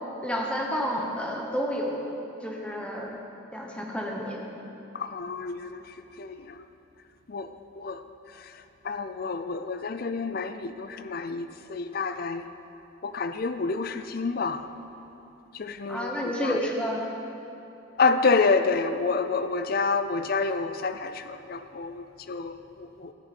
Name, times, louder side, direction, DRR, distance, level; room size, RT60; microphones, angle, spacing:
voice 1, 0.2-2.0 2.4-3.1 3.5-4.4 15.9-17.0, equal, 5° left, -2 dB, 1.1 m, -30 dB
voice 2, 4.9-5.8 6.2-6.6 7.3-7.5 7.8-8.0 8.8-12.4 13.0-14.6 15.5-16.2 16.4-16.6 18.0-23.1, left 4 dB, 45° left, 10 dB, 0.4 m, -28 dB
14.5 x 7.2 x 4.2 m, 2.9 s
head